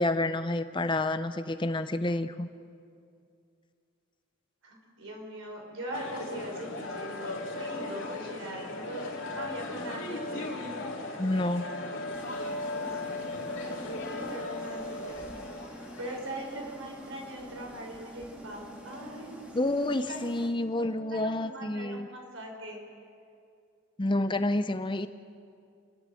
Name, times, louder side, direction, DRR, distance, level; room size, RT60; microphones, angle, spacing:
voice 1, 0.0-2.5 11.2-11.7 19.5-22.1 24.0-25.1, left 2 dB, 20° left, 11 dB, 0.6 m, -29 dB
voice 2, 4.6-10.8 11.8-12.1 12.8-15.2 15.7-22.8, right 1 dB, 70° right, 1 dB, 4.8 m, -41 dB
sound 1, 5.9-16.3, left 2 dB, 60° left, 3.0 m, -37 dB
sound 2, 12.1-20.5, equal, 5° right, 1.8 m, -47 dB
29.0 x 12.0 x 7.7 m, 2.4 s
head